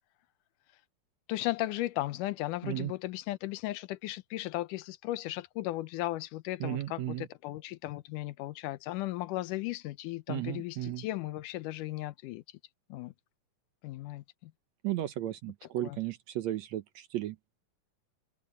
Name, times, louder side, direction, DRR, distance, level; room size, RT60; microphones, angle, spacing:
voice 1, 1.3-12.4 12.9-13.1 13.8-14.5 15.8-16.0, left 17 dB, 80° left, 2.2 m, -36 dB
voice 2, 6.6-7.3 10.3-11.1 14.8-17.4, right 13 dB, 70° right, 1.8 m, -34 dB
omnidirectional pair, 3.8 m